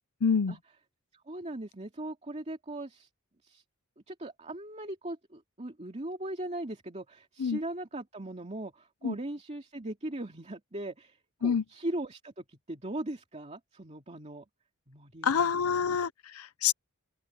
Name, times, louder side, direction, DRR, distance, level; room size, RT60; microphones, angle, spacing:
voice 1, 0.2-0.6 7.4-7.6 9.0-9.1 11.4-11.6 15.2-16.7, left 6 dB, 85° left, 0.6 m, -27 dB
voice 2, 1.1-3.1 3.4-3.6 4.1-14.4 14.9-16.0, right 1 dB, 30° right, 2.5 m, -39 dB
open air
head